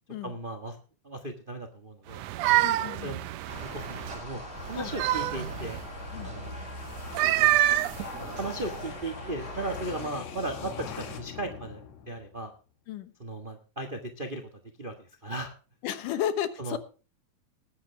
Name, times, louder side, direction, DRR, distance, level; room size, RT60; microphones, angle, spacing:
voice 1, 0.2-0.8 1.0-2.2 3.0-3.2 3.6-4.4 4.7-5.8 6.2-6.5 7.4-7.8 8.2-12.5 13.2-14.4 14.8-15.5 16.6-16.8, right 2 dB, 45° right, 5 dB, 0.6 m, -36 dB
sound 1, 2.1-4.2 4.7-5.9 7.0-8.8, right 14 dB, 80° right, 1.5 m, -27 dB
voice 2, 2.6-3.2 4.7-4.9 6.1-6.3 12.9-13.1 15.8-16.8, left 10 dB, 80° left, 11 dB, 2.7 m, -33 dB
sound 2, 3.1-12.5, left 7 dB, 60° left, 2.8 m, -45 dB
sound 3, 3.5-10.1, equal, 15° right, 6.8 m, -41 dB
20.0 x 8.4 x 3.4 m, 0.35 s
omnidirectional pair, 3.7 m